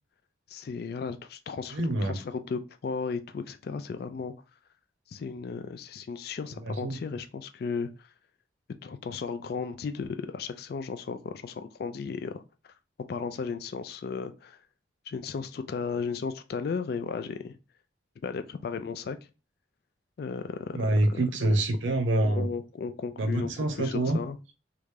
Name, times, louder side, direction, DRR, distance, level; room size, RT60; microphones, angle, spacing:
voice 1, 0.5-4.3 5.1-8.1 8.8-12.4 13.1-14.6 15.1-17.6 18.2-19.2 20.2-21.2 22.2-24.4, left 5 dB, 55° left, 0.3 m, -35 dB
voice 2, 1.7-2.2 6.6-7.0 20.7-22.5 23.2-24.2, right 1 dB, 85° right, 0.7 m, -26 dB
3.3 x 2.4 x 3.2 m
head